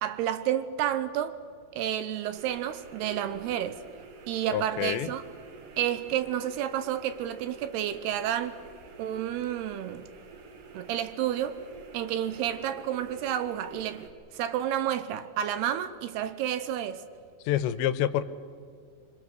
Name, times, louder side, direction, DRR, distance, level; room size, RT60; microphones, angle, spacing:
voice 1, 0.0-1.4 1.7-3.8 4.3-5.2 5.8-8.6 9.0-10.1 10.7-11.6 11.9-14.1 14.3-17.0, right 11 dB, 75° right, 2.8 m, -30 dB
sound 1, 2.4-14.1, right 4 dB, 55° right, 3.2 m, -49 dB
voice 2, 4.5-5.1 17.5-18.2, left 11 dB, 85° left, 3.1 m, -27 dB
26.0 x 25.5 x 6.7 m
omnidirectional pair, 5.0 m